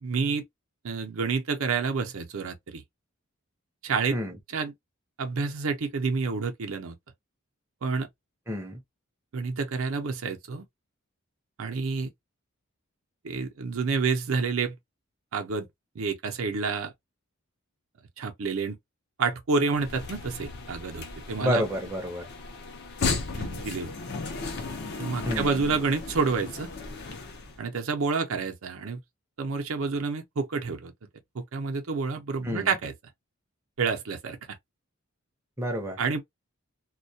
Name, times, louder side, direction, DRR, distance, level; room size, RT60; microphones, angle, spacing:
voice 1, 0.0-0.4 0.8-2.8 3.8-4.2 4.5-4.7 5.2-7.0 7.8-8.1 9.3-10.7 11.6-12.1 13.2-14.8 15.3-15.7 16.0-16.9 18.2-18.8 19.2-21.6 23.3-23.9 25.0-26.7 27.6-29.0 29.4-30.9 31.3-32.9 33.8-34.4 36.0-36.2, right 4 dB, 70° right, 0.5 m, -29 dB
voice 2, 8.5-8.8 21.4-22.2 25.2-25.6 32.4-32.7 35.6-36.0, equal, 10° right, 0.5 m, -29 dB
sound 1, 19.7-27.6, left 4 dB, 50° left, 0.5 m, -35 dB
2.2 x 2.2 x 2.6 m
head